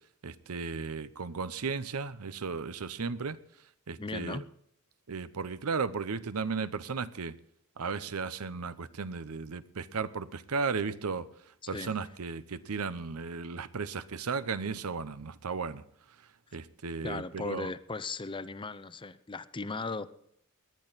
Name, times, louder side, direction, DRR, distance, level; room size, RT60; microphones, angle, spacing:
voice 1, 0.2-3.4 3.9-4.4 5.1-7.4 7.8-11.3 11.7-15.8 16.5-17.7, right 5 dB, 80° right, 15 dB, 0.7 m, -35 dB
voice 2, 4.0-4.4 11.6-11.9 17.0-20.1, left 3 dB, 20° left, 15 dB, 0.6 m, -37 dB
19.0 x 10.5 x 4.1 m, 0.70 s
head